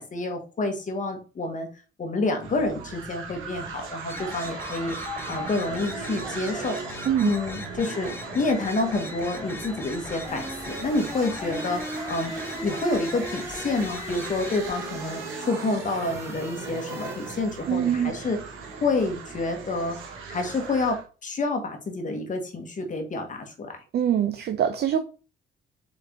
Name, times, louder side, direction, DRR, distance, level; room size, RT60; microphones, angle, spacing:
voice 1, 0.0-1.7 2.0-5.0 5.3-6.8 7.2-11.8 12.1-12.3 12.6-18.4 18.8-20.0 20.3-23.8, left 3 dB, 40° left, 1.1 m, -28 dB
sound 1, 2.4-21.1, right 5 dB, 80° right, 1.0 m, -39 dB
sound 2, 4.1-14.7, left 3 dB, 10° left, 0.9 m, -39 dB
sound 3, 10.3-17.7, right 1 dB, 15° right, 1.5 m, -39 dB
voice 2, 17.7-18.1 23.9-25.0, right 9 dB, 55° right, 0.5 m, -23 dB
4.1 x 3.2 x 3.6 m
cardioid pair, 90°, 20 cm